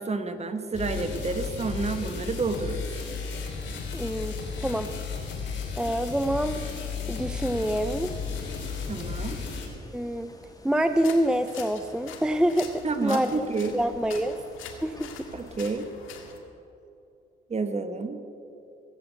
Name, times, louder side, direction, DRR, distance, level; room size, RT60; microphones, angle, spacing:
voice 1, 0.0-2.9 8.9-9.4 12.8-13.8 15.3-15.9 17.5-18.2, right 4 dB, 35° right, 9 dB, 1.2 m, -29 dB
sound 1, 0.7-9.7, left 5 dB, 65° left, 3.3 m, -34 dB
voice 2, 3.9-4.3 4.6-4.9 5.8-6.6 7.1-8.1 9.9-10.3 10.6-13.5 13.7-14.4 14.8-15.1, equal, 5° right, 9 dB, 0.5 m, -26 dB
sound 2, 7.7-15.7, left 2 dB, 20° left, 1.9 m, -50 dB
sound 3, 10.9-16.4, left 7 dB, 85° left, 1.8 m, -45 dB
16.5 x 7.9 x 8.3 m, 2.8 s
cardioid pair, 90°, 20 cm